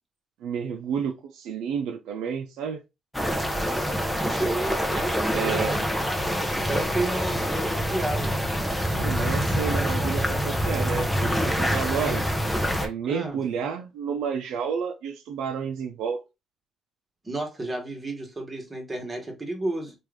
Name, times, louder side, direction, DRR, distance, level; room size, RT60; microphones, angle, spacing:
voice 1, 0.4-2.8 5.3-5.7 9.0-12.3 12.8-16.2, right 7 dB, 90° right, 0.4 m, -30 dB
sound 1, 3.1-12.9, equal, 5° left, 0.7 m, -26 dB
voice 2, 4.2-8.3 13.0-13.4 17.2-19.9, right 2 dB, 25° right, 1.3 m, -32 dB
3.1 x 2.4 x 3.3 m
cardioid pair, 90°, 0 cm